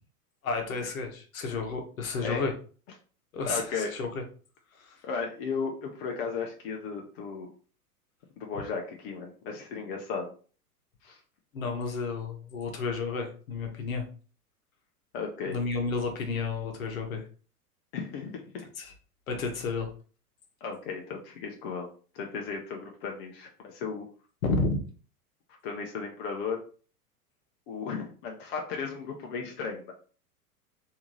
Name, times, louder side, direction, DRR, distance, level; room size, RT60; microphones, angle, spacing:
voice 1, 0.4-2.5 3.3-4.1 11.5-14.0 15.5-17.2 18.8-18.9 19.3-19.9 24.4-24.8, left 4 dB, 60° left, 3 dB, 1.0 m, -31 dB
voice 2, 3.5-3.9 5.0-7.5 8.4-10.3 11.0-11.2 15.1-15.6 17.9-18.7 20.6-21.9 22.1-24.1 25.6-26.6 27.7-29.9, left 5 dB, 35° left, 1 dB, 0.6 m, -35 dB
3.4 x 2.7 x 3.0 m, 0.40 s
figure-of-eight pair, 95°, 46 cm